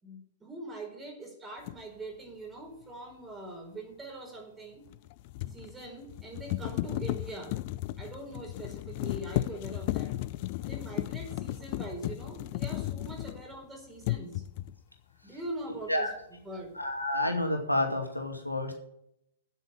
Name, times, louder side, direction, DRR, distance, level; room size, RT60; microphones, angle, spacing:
voice 1, 0.0-4.8 5.5-7.6 8.0-10.1 10.6-14.4 15.2-16.1 16.4-16.7, right 2 dB, 10° right, 1 dB, 4.7 m, -42 dB
sound 1, 1.7-1.8 4.9-13.6 14.0-14.8, left 16 dB, 40° left, 0.5 m, -35 dB
voice 2, 16.7-18.7, left 1 dB, 90° left, 3 dB, 2.2 m, -29 dB
9.6 x 8.3 x 9.0 m, 0.76 s
figure-of-eight pair, 110°, 0 cm